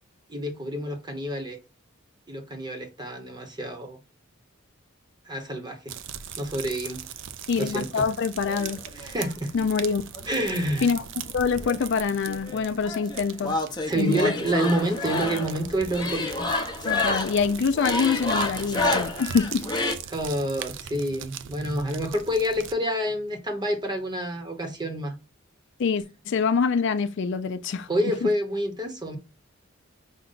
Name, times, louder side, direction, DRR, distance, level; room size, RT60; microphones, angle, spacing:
voice 1, 0.3-1.6 2.3-4.0 5.3-6.0 6.4-7.1 7.6-8.1 8.9-9.5 10.3-10.9 13.8-16.5 20.1-25.2 27.9-29.2, equal, 20° right, 0.9 m, -28 dB
sound 1, 5.9-22.7, right 8 dB, 60° right, 0.4 m, -40 dB
voice 2, 7.5-8.8 9.5-10.0 10.8-11.0 11.3-13.6 13.9-14.3 16.8-19.7 25.8-27.9 28.2-28.3, left 5 dB, 60° left, 0.4 m, -25 dB
sound 2, 8.5-9.3 10.1-11.3 11.6-19.9, left 2 dB, 20° left, 0.7 m, -29 dB
5.2 x 2.2 x 3.8 m
head